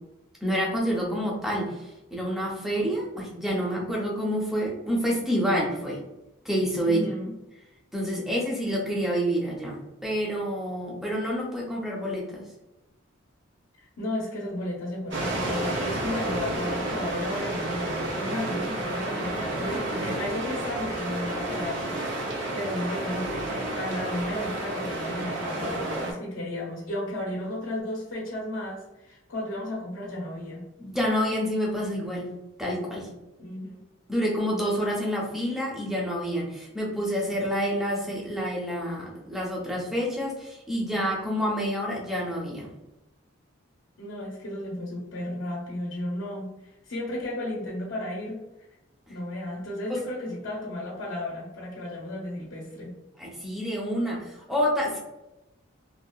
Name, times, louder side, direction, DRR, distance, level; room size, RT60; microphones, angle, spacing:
voice 1, 0.4-6.0 6.4-7.1 7.9-12.4 30.8-32.3 32.6-33.1 34.1-42.7 49.9-50.0 53.2-55.0, equal, ahead, -4 dB, 0.5 m, -28 dB
voice 2, 6.8-7.3 13.8-22.2 22.5-30.7 33.4-33.8 44.0-48.4 49.1-53.0, left 1 dB, 80° left, -4 dB, 0.6 m, -34 dB
sound 1, 15.1-26.1, right 1 dB, 65° right, 0.6 m, -31 dB
2.6 x 2.1 x 2.2 m, 0.96 s
head